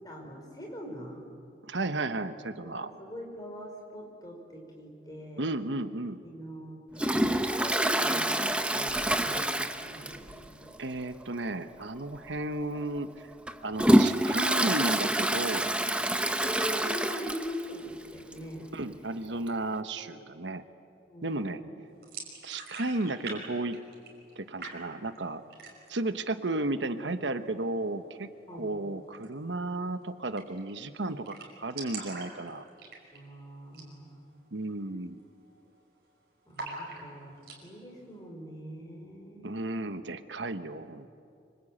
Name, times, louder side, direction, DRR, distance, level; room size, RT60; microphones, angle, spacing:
voice 1, 0.0-1.3 2.6-5.5 6.2-7.1 7.5-8.4 8.7-10.8 16.4-19.0 21.1-21.7 28.5-28.8 33.1-34.2 36.5-39.9, equal, 20° left, 0 dB, 5.1 m, -42 dB
voice 2, 1.6-2.9 5.4-6.2 10.8-13.3 13.6-15.7 18.7-20.6 21.2-21.6 22.4-23.8 24.4-25.4 25.9-32.6 34.5-35.2 39.4-41.1, right 2 dB, 85° right, 10 dB, 1.1 m, -33 dB
Toilet flush, 7.0-10.4 10.7-10.8 11.2-11.3 12.1-12.3 12.8-17.7 18.0-18.1 18.3-18.4 19.5-19.6, right 1 dB, 5° right, 0.8 m, -27 dB
sound 1, 22.0-23.4 23.6-24.3 24.6-25.2 25.5-26.0 26.4-26.5 26.8-27.4 29.1-29.3 29.6-29.7 29.9-30.0 30.4-30.7 31.0-31.1 31.2-33.3 33.7-33.9 34.3-34.4 34.9-35.2 35.4-36.1 36.5-37.6, right 3 dB, 55° right, 5.7 m, -42 dB
25.5 x 25.5 x 8.9 m, 2.5 s
head